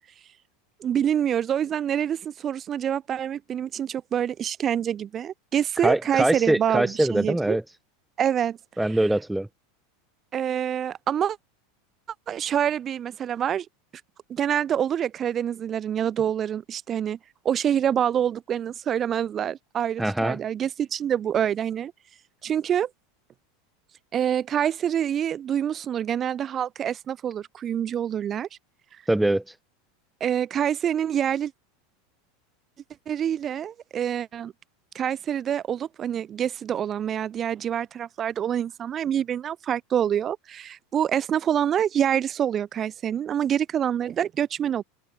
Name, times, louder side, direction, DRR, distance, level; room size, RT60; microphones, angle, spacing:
voice 1, 0.8-7.6 8.2-8.6 10.3-11.4 12.3-13.6 14.3-17.2 17.4-21.9 22.4-22.9 24.1-28.5 30.2-31.5 33.1-34.5 34.9-44.8, right 9 dB, 30° right, 1.4 m, -26 dB
voice 2, 5.8-7.6 8.8-9.5 20.0-20.4 29.1-29.5, right 1 dB, 5° right, 2.8 m, -23 dB
figure-of-eight pair, 80°, 0 cm